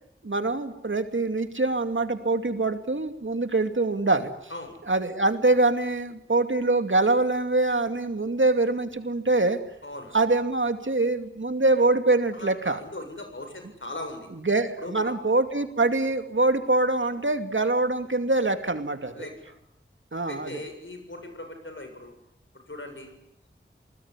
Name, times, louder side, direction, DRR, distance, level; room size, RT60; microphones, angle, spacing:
voice 1, 0.2-4.3 4.9-9.6 10.1-12.8 14.5-19.1 20.1-20.6, right 2 dB, 75° right, 7 dB, 2.5 m, -24 dB
voice 2, 9.8-10.2 12.3-14.3 14.8-15.1 19.1-19.5 20.3-22.1 22.7-23.1, left 2 dB, 75° left, 5 dB, 7.4 m, -39 dB
28.5 x 20.0 x 9.8 m, 0.77 s
wide cardioid pair, 45°, 20 cm